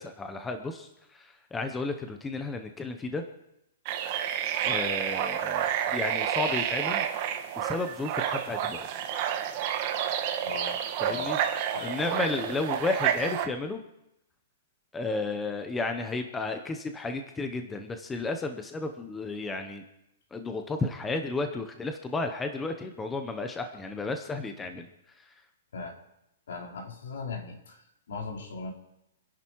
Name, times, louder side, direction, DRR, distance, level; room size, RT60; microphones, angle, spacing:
voice 1, 0.0-3.2 4.6-7.1 7.6-8.9 11.0-11.4 11.8-13.8 14.9-19.8 20.3-24.9, left 3 dB, 5° left, 6 dB, 0.8 m, -33 dB
sound 1, 3.9-13.5, right 10 dB, 25° right, 1.3 m, -30 dB
voice 2, 10.4-11.4 11.7-12.0 25.7-25.9 26.5-28.7, left 4 dB, 75° left, 0 dB, 4.7 m, -38 dB
27.5 x 11.0 x 4.6 m, 0.84 s
hypercardioid pair, 180°, 0 cm